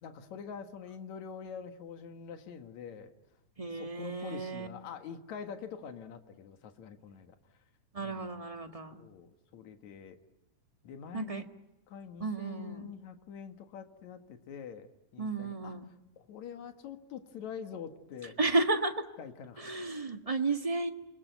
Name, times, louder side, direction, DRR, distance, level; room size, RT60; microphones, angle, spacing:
voice 1, 0.0-3.1 3.7-7.4 8.0-8.3 8.9-10.2 10.8-11.5 11.9-18.4 19.2-20.0, left 7 dB, 70° left, 6 dB, 2.9 m, -45 dB
voice 2, 3.6-4.7 7.9-9.0 11.1-11.4 12.2-12.9 15.2-15.9 18.4-18.9 19.6-20.9, right 3 dB, 20° right, 4 dB, 0.9 m, -32 dB
28.5 x 22.0 x 9.3 m, 1.0 s
omnidirectional pair, 3.4 m